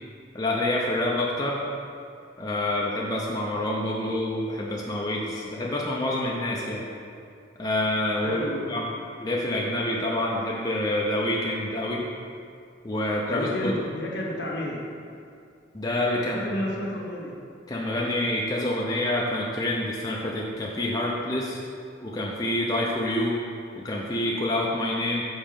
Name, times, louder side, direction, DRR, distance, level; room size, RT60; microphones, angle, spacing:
voice 1, 0.3-1.6 2.4-6.9 7.6-8.9 9.2-12.0 12.8-13.7 15.7-16.5 17.7-21.6 22.0-23.4 23.8-25.2, left 1 dB, 20° left, -4 dB, 0.5 m, -27 dB
voice 2, 8.2-8.7 13.3-14.8 16.2-17.4, left 1 dB, 65° left, -3 dB, 1.2 m, -31 dB
5.4 x 5.0 x 5.1 m, 2.4 s
head